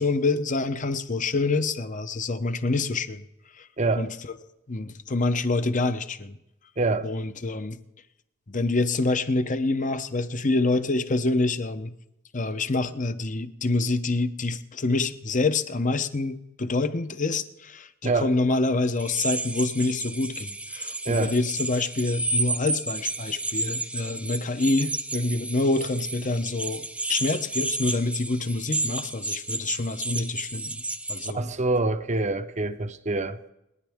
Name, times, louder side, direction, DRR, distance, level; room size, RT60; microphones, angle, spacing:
voice 1, 0.0-3.2 3.6-3.7 4.0-4.1 4.7-6.4 7.0-7.8 8.5-11.9 12.3-30.8 31.1-31.4, left 3 dB, 40° left, 10 dB, 0.9 m, -26 dB
voice 2, 3.8-4.1 6.8-7.1 18.0-18.3 21.1-21.3 31.3-33.4, right 3 dB, 35° right, 10 dB, 0.8 m, -25 dB
sound 1, 19.0-31.3, right 2 dB, 5° right, 0.6 m, -32 dB
29.5 x 10.0 x 3.6 m, 0.87 s
head